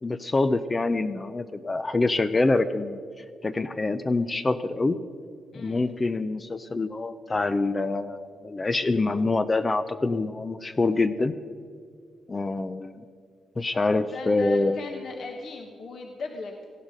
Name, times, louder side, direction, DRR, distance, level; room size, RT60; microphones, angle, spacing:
voice 1, 0.0-3.0 3.4-5.0 5.5-11.3 12.3-13.0 13.6-14.8, left 3 dB, 25° left, 11 dB, 0.5 m, -25 dB
voice 2, 5.5-5.8 14.1-16.5, left 3 dB, 55° left, 2 dB, 1.5 m, -38 dB
18.0 x 14.5 x 5.2 m, 2.1 s
cardioid pair, 115°, 0 cm